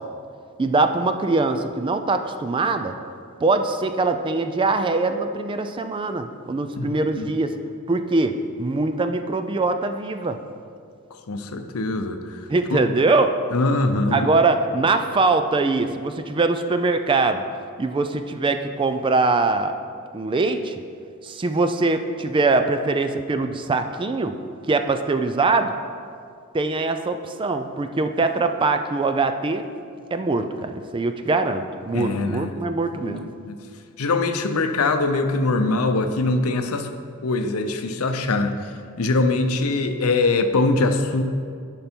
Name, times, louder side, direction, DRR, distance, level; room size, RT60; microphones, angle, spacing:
voice 1, 0.6-2.9 3.4-7.5 7.9-10.4 12.5-13.4 14.1-17.4 17.8-19.7 20.1-20.8 21.2-24.4 24.7-25.7 26.5-29.6 30.1-33.3, right 3 dB, 25° right, 8 dB, 0.3 m, -22 dB
voice 2, 6.8-7.3 11.3-12.4 12.7-12.8 13.5-14.3 31.9-32.5 33.1-33.2 33.5-33.6 34.0-36.9 37.2-38.6 39.0-41.2, left 3 dB, 80° left, 8 dB, 0.6 m, -22 dB
10.5 x 5.4 x 4.4 m, 2.3 s
head